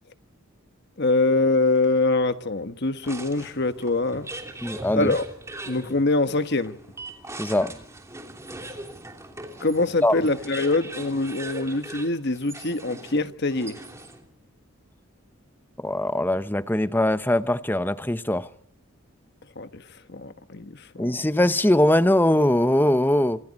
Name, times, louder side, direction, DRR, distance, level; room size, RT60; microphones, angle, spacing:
voice 1, 1.0-4.3 4.9-5.2 5.7-6.8 9.6-13.8 19.5-19.8 20.1-21.1, left 2 dB, 50° left, 1.4 m, -24 dB
sound 1, 3.0-14.3, right 2 dB, 15° right, 3.1 m, -40 dB
voice 2, 4.6-5.1 7.4-7.7 10.0-10.2 15.8-18.5 21.0-23.4, left 1 dB, 10° left, 0.8 m, -21 dB
27.0 x 26.0 x 4.2 m
head